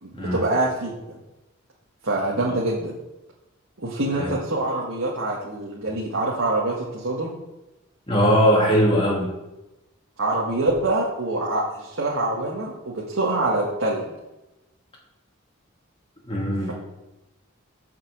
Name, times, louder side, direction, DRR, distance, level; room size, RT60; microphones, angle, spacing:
voice 1, 0.0-1.2 2.0-2.9 3.8-7.3 10.2-14.1, right 2 dB, 75° right, -5 dB, 1.8 m, -25 dB
voice 2, 8.1-9.3 16.3-16.7, equal, 25° left, -4 dB, 2.5 m, -20 dB
7.5 x 6.1 x 7.4 m, 0.97 s
head